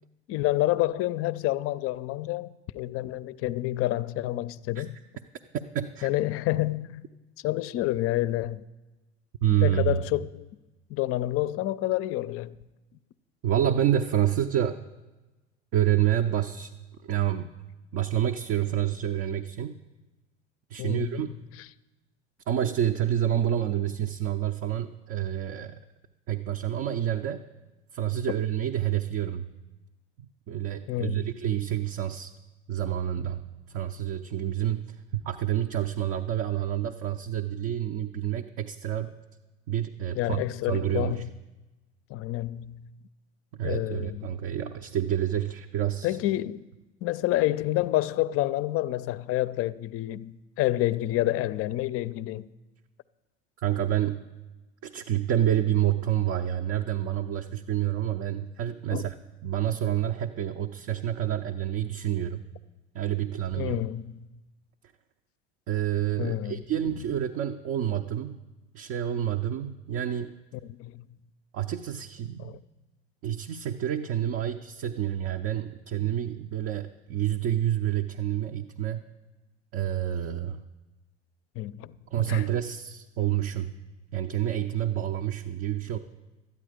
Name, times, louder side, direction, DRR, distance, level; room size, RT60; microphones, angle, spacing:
voice 1, 0.3-5.0 6.0-7.0 7.4-8.6 9.6-10.5 10.9-12.6 20.8-21.2 30.9-31.4 40.1-41.3 42.1-42.9 43.6-44.3 46.0-46.6 47.0-52.5 58.9-59.1 63.6-64.3 66.2-66.6 70.8-71.1 72.4-72.6 81.6-81.9 82.2-82.5, left 15 dB, 40° left, 0.5 m, -28 dB
voice 2, 5.7-6.1 9.4-10.0 13.4-14.8 15.7-16.7 17.0-17.5 17.9-19.8 20.7-21.4 22.5-25.8 26.3-27.4 27.9-29.5 30.5-32.3 32.7-33.4 33.7-39.1 39.7-40.4 40.7-41.2 43.6-46.2 53.6-54.3 54.8-59.1 59.4-62.4 62.9-63.8 65.7-68.4 68.7-70.4 71.5-72.6 73.2-79.0 79.7-80.6 82.1-83.7 84.1-86.0, right 11 dB, 45° right, 0.6 m, -28 dB
12.5 x 9.5 x 5.0 m
hypercardioid pair, 75°, 34 cm